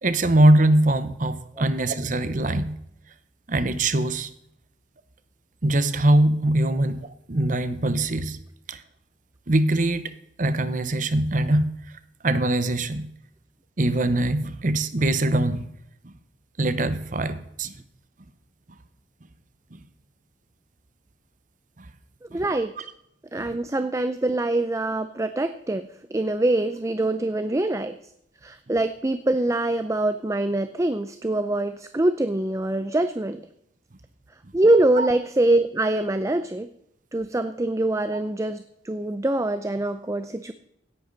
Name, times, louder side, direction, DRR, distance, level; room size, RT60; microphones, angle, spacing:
voice 1, 0.0-2.8 3.5-4.3 5.6-8.4 8.7-8.8 9.5-11.7 12.2-13.1 13.8-15.7 16.0-16.1 16.6-17.7 19.7-19.8 21.8-21.9 22.3-22.4 22.8-22.9 23.4-23.5 35.0-35.1, right 1 dB, 45° right, 12 dB, 0.8 m, -22 dB
voice 2, 22.2-22.7 23.3-28.0 28.4-33.5 34.5-36.7 37.1-40.5, right 2 dB, 15° right, 11 dB, 0.4 m, -24 dB
16.5 x 10.0 x 4.0 m, 0.77 s
head